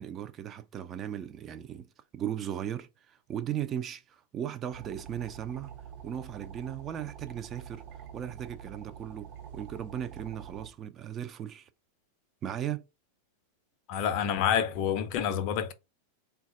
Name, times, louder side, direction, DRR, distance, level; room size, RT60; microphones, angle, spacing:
voice 1, 0.0-5.7 6.0-7.8 8.1-11.7 12.4-12.8, right 10 dB, 30° right, 0.4 m, -37 dB
sound 1, 4.7-10.7, right 8 dB, 45° right, 0.7 m, -46 dB
voice 2, 13.9-15.7, left 9 dB, 45° left, 0.5 m, -28 dB
3.8 x 2.3 x 3.8 m
figure-of-eight pair, 90°, 0 cm